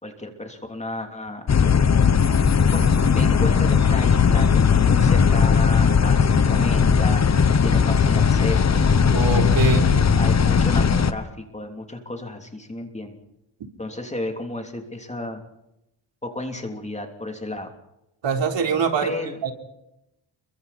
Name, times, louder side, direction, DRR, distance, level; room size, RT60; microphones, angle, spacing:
voice 1, 0.0-2.0 2.7-2.9 3.1-8.9 9.6-13.2 13.8-15.4 16.2-17.7 19.0-19.4, left 2 dB, 15° left, 4 dB, 3.1 m, -33 dB
sound 1, 1.5-11.1, left 6 dB, 35° left, 1.1 m, -18 dB
voice 2, 9.1-10.0 18.2-19.1 19.4-19.5, right 5 dB, 65° right, 4 dB, 3.9 m, -23 dB
30.0 x 23.5 x 4.3 m, 0.87 s
wide cardioid pair, 135°, 48 cm